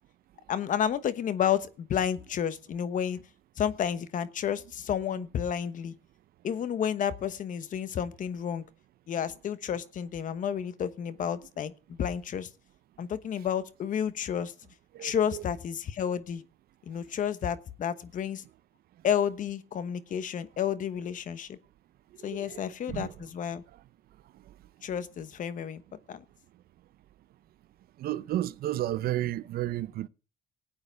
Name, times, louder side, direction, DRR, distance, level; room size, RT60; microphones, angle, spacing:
voice 1, 0.5-3.2 3.6-6.0 6.4-8.6 9.1-12.5 13.0-14.5 15.0-16.4 16.9-18.4 19.0-21.6 22.2-23.6 24.8-25.8 26.1-26.2, left 8 dB, 50° left, 1.1 m, -31 dB
voice 2, 14.9-15.4 22.2-23.1 28.0-30.1, right 14 dB, 65° right, 0.7 m, -32 dB
18.0 x 8.7 x 3.5 m
cardioid pair, 110°, 17 cm